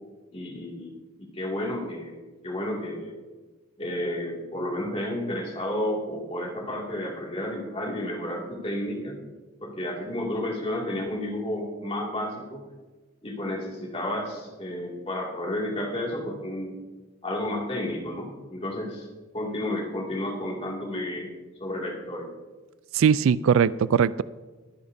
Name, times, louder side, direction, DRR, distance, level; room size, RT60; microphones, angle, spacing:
voice 1, 0.3-0.9 1.2-3.1 3.8-9.2 9.6-12.6 13.2-16.7 17.2-19.1 19.3-21.3 21.6-22.3, left 1 dB, 25° left, -1 dB, 2.3 m, -31 dB
voice 2, 22.9-24.2, right 7 dB, 65° right, 18 dB, 0.3 m, -20 dB
22.0 x 10.0 x 2.7 m, 1.3 s
head